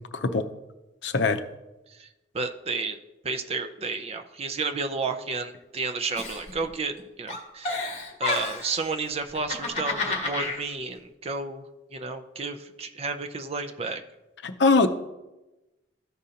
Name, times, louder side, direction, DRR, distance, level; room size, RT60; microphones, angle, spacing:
voice 1, 1.0-1.4 14.4-14.9, left 3 dB, 70° left, 9 dB, 0.6 m, -21 dB
voice 2, 2.3-3.0 3.2-7.8 8.2-11.6 11.9-14.0, right 4 dB, 35° right, 7 dB, 0.5 m, -31 dB
Giggle, 6.1-7.0 7.3-8.7 9.3-10.6, left 3 dB, 35° left, 1.5 m, -30 dB
13.5 x 5.1 x 2.8 m, 1.0 s
head